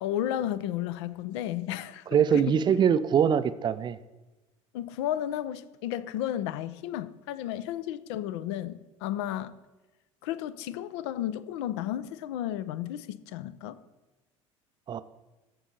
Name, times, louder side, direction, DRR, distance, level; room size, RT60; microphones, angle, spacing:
voice 1, 0.0-2.4 4.7-9.5 10.2-13.8, left 12 dB, 55° left, 15 dB, 0.5 m, -33 dB
voice 2, 2.1-4.0 14.9-15.0, right 8 dB, 25° right, 14 dB, 0.4 m, -23 dB
14.0 x 5.4 x 4.2 m, 1.1 s
figure-of-eight pair, 65°, 17 cm